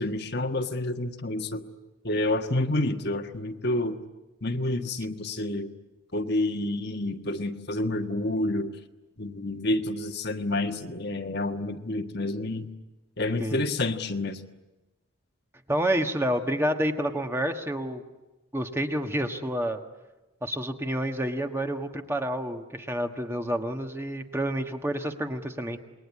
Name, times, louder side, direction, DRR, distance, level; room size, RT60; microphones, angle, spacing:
voice 1, 0.0-1.6 2.0-4.0 4.4-5.7 6.1-8.7 9.2-12.7 13.2-14.4, left 2 dB, 50° left, 6 dB, 1.5 m, -29 dB
voice 2, 15.7-18.0 18.5-19.8 20.4-25.8, right 1 dB, 10° right, 5 dB, 1.4 m, -29 dB
28.0 x 21.5 x 9.8 m, 1.1 s
head